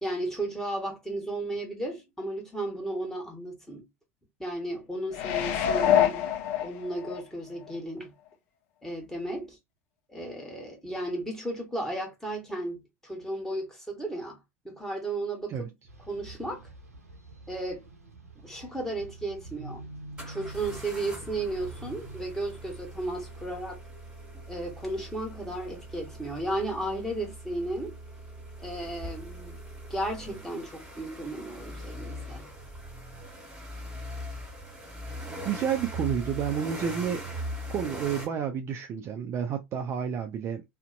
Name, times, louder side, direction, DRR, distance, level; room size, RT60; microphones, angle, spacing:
voice 1, 0.0-3.8 4.4-6.3 6.6-8.1 8.8-9.6 10.1-14.4 14.6-15.7 16.1-16.7 17.5-17.9 18.4-19.8 20.3-23.8 24.5-27.9 28.6-29.6 29.9-32.5, right 1 dB, 5° left, 1.2 m, -34 dB
sound 1, 5.1-7.2 7.7-7.8, left 10 dB, 55° left, 0.5 m, -25 dB
sound 2, 15.9-22.3, right 3 dB, 85° right, 0.6 m, -46 dB
sound 3, 19.0-19.1 20.2-38.3, equal, 10° right, 1.4 m, -41 dB
voice 2, 35.4-37.4 37.7-40.6, right 8 dB, 35° right, 0.4 m, -30 dB
2.5 x 2.1 x 2.5 m
figure-of-eight pair, 80°, 8 cm